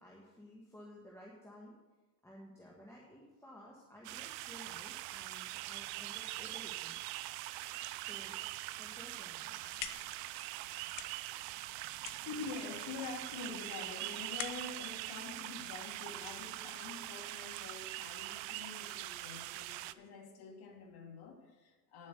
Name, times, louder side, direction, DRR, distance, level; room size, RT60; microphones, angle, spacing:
voice 1, 0.0-1.7 2.2-7.0 7.9-8.5 8.8-9.6 9.9-10.0, equal, 5° left, -4 dB, 1.4 m, -55 dB
sound 1, 4.0-19.9, right 17 dB, 80° right, 0.6 m, -43 dB
sound 2, 9.4-16.2, left 11 dB, 75° left, 1.0 m, -49 dB
voice 2, 11.6-11.9 12.2-22.1, left 4 dB, 50° left, 1 dB, 2.4 m, -47 dB
9.8 x 7.5 x 6.7 m, 1.2 s
cardioid pair, 135°, 46 cm